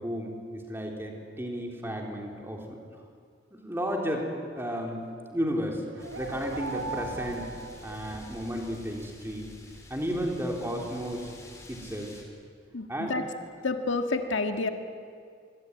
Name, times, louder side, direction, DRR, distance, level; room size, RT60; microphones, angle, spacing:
voice 1, 0.0-2.8 3.5-4.3 4.6-5.0 5.3-5.8 6.2-7.5 7.8-9.5 9.9-11.3 11.7-12.1 12.9-13.2, equal, 10° right, 1 dB, 3.6 m, -33 dB
sound 1, 5.7-8.6, right 3 dB, 85° right, 1.2 m, -39 dB
sound 2, 6.0-12.2, left 1 dB, 15° left, 4.1 m, -48 dB
voice 2, 12.7-13.2 13.6-14.7, left 3 dB, 75° left, 6 dB, 1.6 m, -29 dB
24.5 x 23.0 x 9.6 m, 2.2 s
head